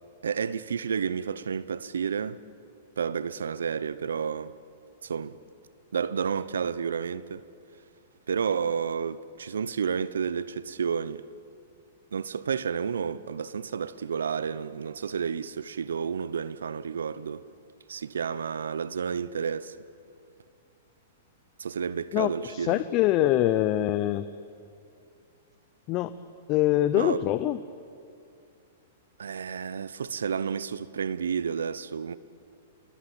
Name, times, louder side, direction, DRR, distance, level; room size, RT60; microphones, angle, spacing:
voice 1, 0.2-2.4 3.0-4.5 5.0-5.4 5.9-7.4 8.3-11.2 12.1-17.4 17.9-19.8 21.6-22.8 26.9-27.2 29.2-32.2, right 6 dB, 85° right, 0.8 m, -31 dB
voice 2, 22.1-24.3 25.9-26.1 26.5-27.6, left 13 dB, 40° left, 0.8 m, -24 dB
27.5 x 22.0 x 8.7 m
hypercardioid pair, 120°, 0 cm